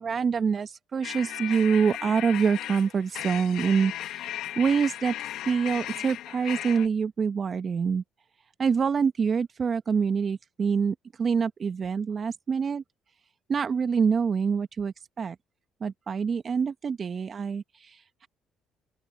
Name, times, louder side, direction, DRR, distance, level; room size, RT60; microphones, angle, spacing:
voice 1, 0.0-8.0 8.6-12.8 13.5-15.4 15.8-18.3, right 6 dB, 45° right, 1.1 m, -26 dB
sound 1, 1.0-6.9, left 13 dB, 70° left, 1.8 m, -36 dB
open air
supercardioid pair, 65°, 0 cm